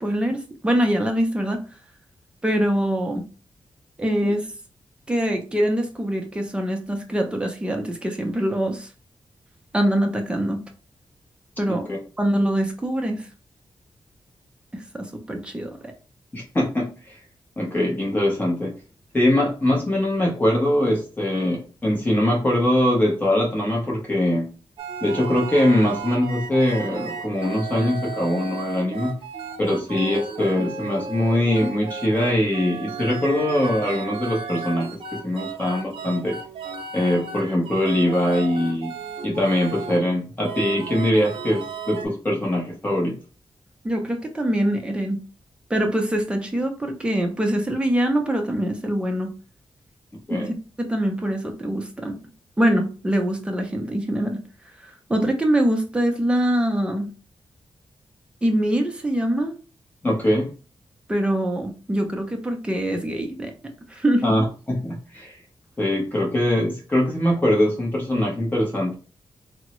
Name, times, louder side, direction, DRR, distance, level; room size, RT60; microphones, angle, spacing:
voice 1, 0.0-1.6 2.4-3.2 4.0-4.5 5.1-8.9 9.7-10.6 11.6-11.8 12.2-13.3 14.7-15.9 43.8-45.2 45.7-49.3 50.4-52.2 52.6-54.4 55.1-57.1 58.4-59.5 61.1-63.5 63.9-64.2, right 1 dB, 10° right, 3 dB, 0.5 m, -23 dB
voice 2, 11.7-12.0 16.3-17.2 17.6-18.7 19.1-24.5 25.0-29.1 29.6-36.4 36.9-38.9 39.2-43.2 50.3-50.5 60.0-60.5 64.2-65.4 65.8-69.0, left 1 dB, 20° left, -2 dB, 0.8 m, -22 dB
sound 1, 24.8-40.1 40.4-42.1, right 5 dB, 80° right, 0.5 m, -34 dB
3.4 x 2.0 x 3.0 m, 0.36 s
wide cardioid pair, 150°, 9 cm